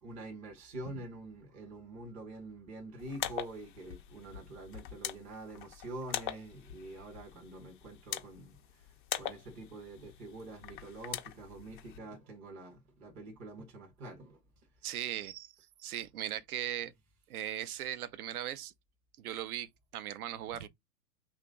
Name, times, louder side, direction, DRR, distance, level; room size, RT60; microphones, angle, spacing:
voice 1, 0.0-14.4, right 2 dB, 15° right, 0.6 m, -46 dB
sound 1, 3.0-12.0, left 11 dB, 35° left, 0.4 m, -43 dB
voice 2, 14.8-15.5 15.8-16.9 17.3-18.7 19.2-20.7, right 12 dB, 65° right, 0.6 m, -38 dB
2.9 x 2.4 x 3.7 m
hypercardioid pair, 115°, 49 cm